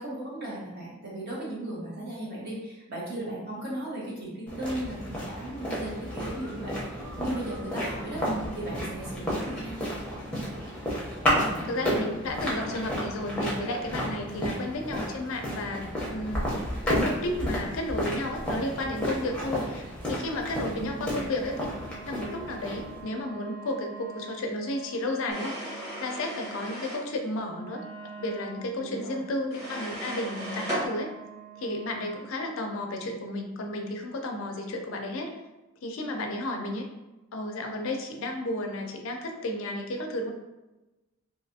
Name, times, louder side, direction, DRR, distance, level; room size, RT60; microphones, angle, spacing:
voice 1, 0.0-8.2 8.6-10.0 14.3-14.6 20.7-21.3 28.8-29.2, right 1 dB, 45° right, -6 dB, 1.0 m, -36 dB
sound 1, 4.5-23.0, equal, 5° left, 0.6 m, -32 dB
voice 2, 11.4-16.5 16.9-21.7 22.0-27.8 28.2-31.1 31.6-35.3 35.8-36.8 37.3-40.3, left 1 dB, 60° left, 3 dB, 0.4 m, -33 dB
Wind instrument woodwind instrument, 21.3-32.3, right 6 dB, 70° right, 0.6 m, -46 dB
sound 2, 25.3-27.1 29.5-30.9, equal, 15° right, 1.1 m, -36 dB
3.1 x 2.6 x 2.7 m, 1.1 s
head